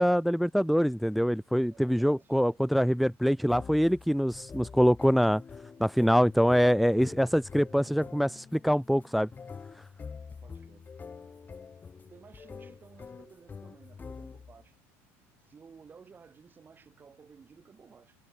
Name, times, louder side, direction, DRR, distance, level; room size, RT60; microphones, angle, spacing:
voice 1, 0.0-5.4 5.8-9.3, equal, ahead, 0.6 m, -24 dB
voice 2, 1.7-2.6 7.7-8.0 10.3-10.9 12.1-14.7 15.5-18.2, right 5 dB, 25° right, 6.4 m, -55 dB
sound 1, 3.5-14.7, left 5 dB, 25° left, 7.8 m, -46 dB
supercardioid pair, 100°, 7 cm